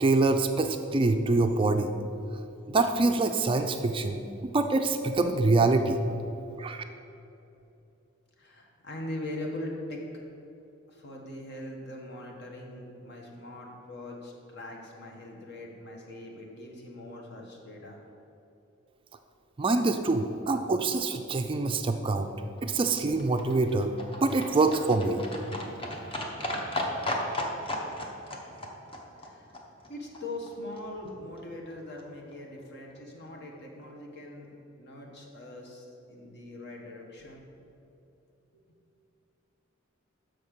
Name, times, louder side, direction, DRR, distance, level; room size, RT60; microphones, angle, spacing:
voice 1, 0.0-1.9 2.7-6.0 6.6-6.8 19.6-22.3 22.6-23.9 24.2-25.2, right 3 dB, 25° right, 6 dB, 0.4 m, -25 dB
voice 2, 8.4-10.0 10.9-18.0 27.6-28.0 29.1-29.5 29.9-34.5 34.8-37.4 38.5-38.8, left 1 dB, 55° left, 0 dB, 1.3 m, -41 dB
Livestock farm animals working animals, 22.3-30.5 30.8-30.9 31.1-31.2 31.4-31.5 31.7-31.8 32.0-32.1 32.3-32.4 32.6-32.7 33.0-33.1, left 1 dB, 25° left, 0.9 m, -36 dB
6.4 x 5.4 x 6.5 m, 2.8 s
head